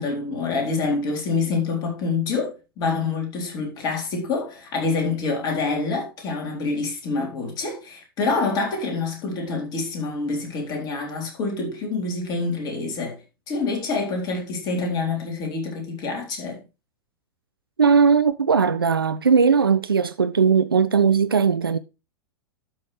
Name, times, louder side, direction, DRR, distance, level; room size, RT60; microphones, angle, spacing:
voice 1, 0.0-13.2 13.5-16.6, left 4 dB, 35° left, 3.8 m, -26 dB
voice 2, 17.8-21.8, right 6 dB, 80° right, 0.5 m, -18 dB
12.0 x 6.1 x 3.2 m
figure-of-eight pair, 95°, 12 cm